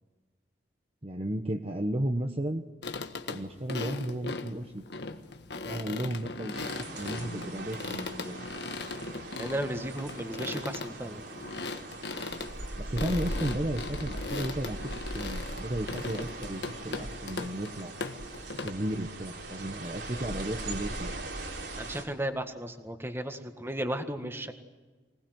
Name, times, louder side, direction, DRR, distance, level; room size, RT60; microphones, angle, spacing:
voice 1, 1.0-2.6 3.3-4.8 5.6-8.3 12.8-14.9 15.1-18.0 18.6-21.1, right 1 dB, 35° right, 5 dB, 1.1 m, -34 dB
sound 1, 2.8-18.7, left 3 dB, 65° left, 1.6 m, -38 dB
sound 2, 6.5-22.0, right 2 dB, 80° right, 5.0 m, -40 dB
voice 2, 9.4-11.2 21.8-24.5, right 1 dB, 15° right, 7 dB, 1.8 m, -34 dB
25.0 x 19.0 x 9.4 m, 1.3 s
head